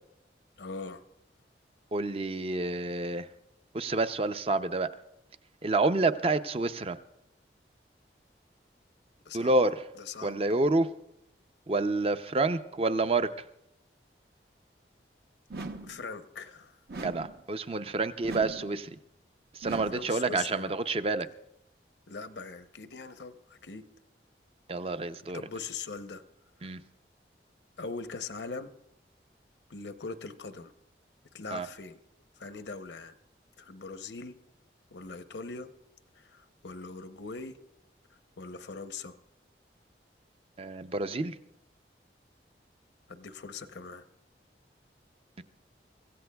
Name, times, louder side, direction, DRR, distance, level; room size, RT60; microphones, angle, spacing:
voice 1, 0.6-1.0 9.2-9.5 9.9-10.4 15.8-16.8 19.9-20.7 22.1-23.8 25.3-26.2 26.6-26.8 27.8-28.7 29.7-30.7 31.3-32.0 32.3-33.2 33.6-34.4 34.9-35.7 36.1-37.6 38.1-39.1 43.1-44.0, left 4 dB, 85° left, 10 dB, 0.8 m, -41 dB
voice 2, 1.9-3.3 3.7-4.9 5.6-7.0 9.3-9.8 10.2-10.9 11.7-13.5 17.0-19.0 19.5-21.3 24.7-25.4 26.6-26.8 31.5-31.7 40.6-41.4 45.4-45.5, right 2 dB, 35° right, 11 dB, 0.5 m, -28 dB
sound 1, 15.5-16.1 16.9-17.4 18.2-18.8 19.6-20.2, right 3 dB, 60° right, 0.8 m, -40 dB
24.5 x 15.5 x 2.3 m, 0.82 s
head